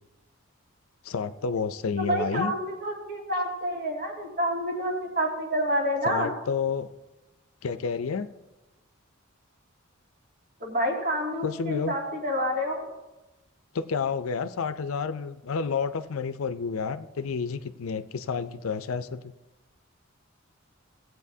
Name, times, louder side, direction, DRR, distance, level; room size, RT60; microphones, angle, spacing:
voice 1, 1.0-2.5 6.0-6.9 7.6-8.3 11.4-11.9 13.7-19.2, left 5 dB, 75° left, 12 dB, 0.5 m, -30 dB
voice 2, 2.0-6.3 10.6-12.8, equal, 50° right, -2 dB, 2.3 m, -28 dB
17.0 x 7.9 x 2.7 m, 1.0 s
head